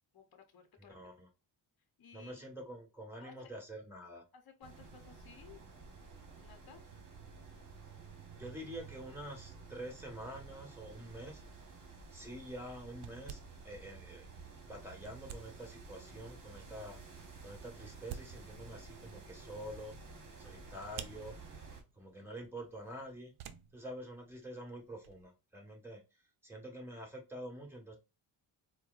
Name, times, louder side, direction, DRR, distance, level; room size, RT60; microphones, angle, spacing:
voice 1, 0.1-1.1 2.0-2.4 3.2-3.5 4.3-5.6 6.4-6.8 20.8-20.9 26.5-26.6, left 6 dB, 50° left, 6 dB, 0.9 m, -57 dB
voice 2, 0.8-1.3 2.1-4.2 7.9-8.0 8.3-11.4 12.1-14.3 14.7-17.0 17.4-20.0 20.4-21.3 21.9-23.3 23.7-28.0, right 1 dB, 5° right, -1 dB, 1.5 m, -47 dB
sound 1, 4.6-21.8, right 4 dB, 40° right, 1.3 m, -52 dB
sound 2, 11.7-25.3, right 9 dB, 85° right, 0.6 m, -54 dB
4.4 x 2.2 x 2.5 m, 0.28 s
cardioid pair, 90°, 48 cm